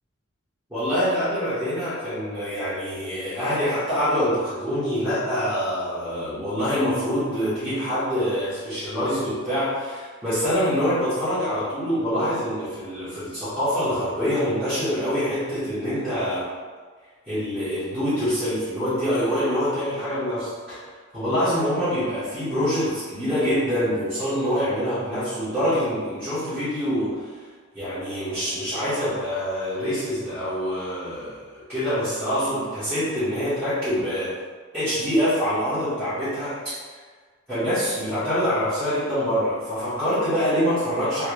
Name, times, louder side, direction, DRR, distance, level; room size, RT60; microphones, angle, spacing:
voice 1, 0.7-16.4 17.3-20.8 21.1-27.2 27.7-34.3 34.7-36.7 37.5-41.3, equal, 10° right, -16 dB, 1.3 m, -25 dB
3.3 x 3.0 x 3.0 m, 1.5 s
head